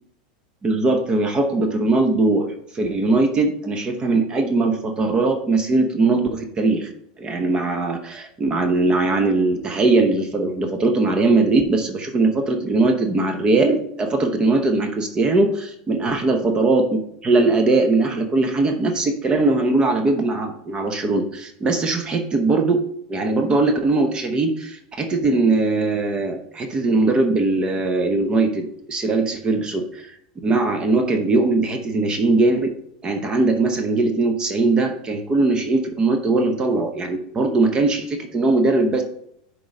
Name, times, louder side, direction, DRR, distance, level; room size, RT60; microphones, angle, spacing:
voice 1, 0.6-2.5 2.7-6.9 7.2-16.9 17.2-22.8 23.1-30.2 30.4-32.7 33.0-39.0, right 3 dB, 20° right, 5 dB, 0.8 m, -20 dB
6.5 x 4.6 x 4.9 m, 0.72 s
supercardioid pair, 135°, 4 cm